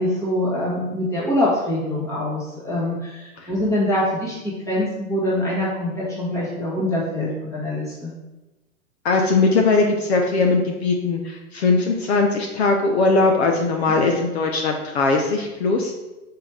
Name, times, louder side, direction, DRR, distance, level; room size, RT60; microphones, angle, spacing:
voice 1, 0.0-8.1, left 1 dB, 5° left, -6 dB, 1.5 m, -24 dB
voice 2, 9.0-15.9, left 3 dB, 50° left, 2 dB, 0.9 m, -20 dB
6.1 x 4.7 x 4.8 m, 1.0 s
hypercardioid pair, 160°, 43 cm